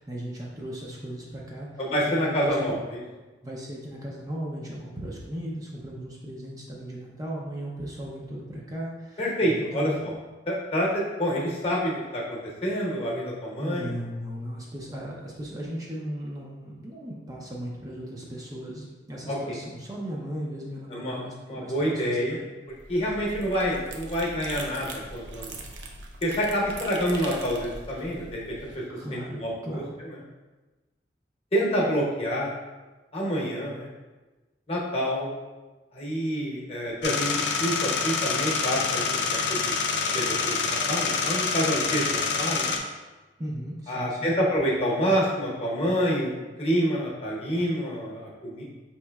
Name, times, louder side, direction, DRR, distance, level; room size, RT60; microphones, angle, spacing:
voice 1, 0.0-2.8 3.4-10.1 13.6-22.5 28.9-29.9 43.4-44.3, equal, 20° right, -3 dB, 0.4 m, -37 dB
voice 2, 1.8-2.8 9.2-9.9 10.5-13.9 19.3-19.6 20.9-21.2 21.5-22.4 22.9-25.5 26.2-28.4 28.7-28.8 29.1-29.8 31.5-32.5 33.1-33.9 34.7-35.3 35.9-39.8 40.1-42.7 43.9-46.3 46.6-48.6, equal, 35° left, -4 dB, 0.8 m, -27 dB
sound 1, 22.7-28.8, right 2 dB, 90° right, 0.5 m, -41 dB
sound 2, 37.0-42.8, left 5 dB, 75° left, 0.4 m, -26 dB
5.4 x 3.0 x 2.2 m, 1.2 s
head